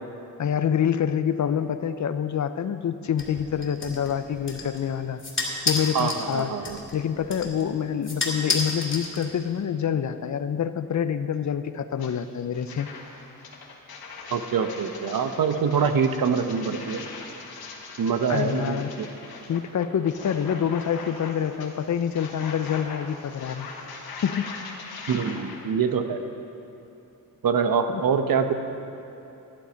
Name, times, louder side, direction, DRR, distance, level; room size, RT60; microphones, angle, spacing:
voice 1, 0.4-5.2 5.7-12.9 18.3-18.9 19.5-23.7 24.2-24.5 27.9-28.0, left 8 dB, 55° left, 11 dB, 0.6 m, -27 dB
sound 1, 3.2-9.6, left 3 dB, 35° left, 2.4 m, -32 dB
voice 2, 5.9-6.8 14.3-17.1 18.0-19.1 25.1-26.2 27.4-28.5, right 6 dB, 70° right, 8 dB, 0.9 m, -24 dB
sound 2, 12.0-12.1 12.5-25.6, left 4 dB, 85° left, 1.4 m, -41 dB
12.0 x 11.5 x 5.2 m, 2.9 s
cardioid pair, 75°, 36 cm